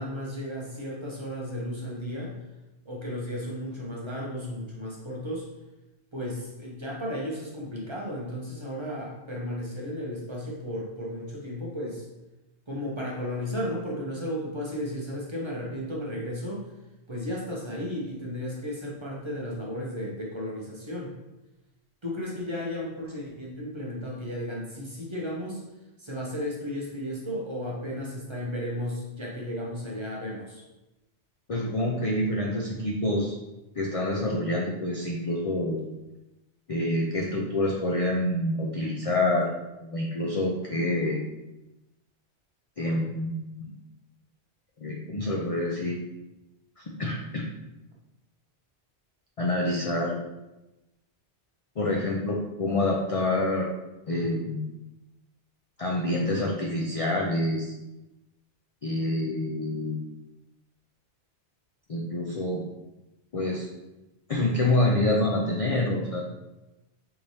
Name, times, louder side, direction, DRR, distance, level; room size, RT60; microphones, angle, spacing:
voice 1, 0.0-2.4 2.8-5.4 6.1-12.1 12.7-16.7 17.1-21.1 22.0-25.6 26.0-30.6, equal, 30° right, -4 dB, 0.8 m, -34 dB
voice 2, 31.5-33.3 33.8-35.8 36.7-39.5 39.8-41.2 42.8-43.7 44.8-46.0 46.8-47.4 49.4-50.2 51.8-53.7 54.1-54.6 55.8-57.7 58.8-60.0 61.9-62.6 63.3-63.7 64.3-66.2, left 1 dB, 50° left, -2 dB, 0.4 m, -27 dB
4.6 x 3.2 x 2.7 m, 0.99 s
omnidirectional pair, 1.1 m